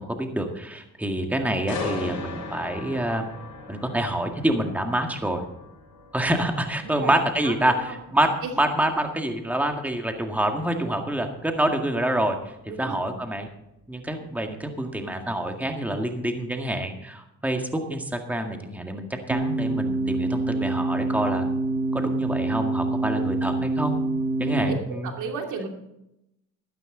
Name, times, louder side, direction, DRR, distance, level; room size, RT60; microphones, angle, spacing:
voice 1, 0.0-3.3 3.7-5.4 6.1-8.3 8.6-13.5 13.9-21.5 21.9-24.0 24.4-25.1, right 1 dB, 5° right, 4 dB, 1.8 m, -27 dB
sound 1, 1.7-15.5 15.9-16.2, left 3 dB, 70° left, 5.8 m, -40 dB
voice 2, 6.8-7.1 7.4-8.0 8.4-8.6 12.7-13.2 24.4-25.7, right 4 dB, 80° right, 2 dB, 2.8 m, -34 dB
sound 2, 19.3-24.8, right 2 dB, 35° right, 1.3 m, -26 dB
13.5 x 13.0 x 3.9 m, 0.84 s
cardioid pair, 90°, 30 cm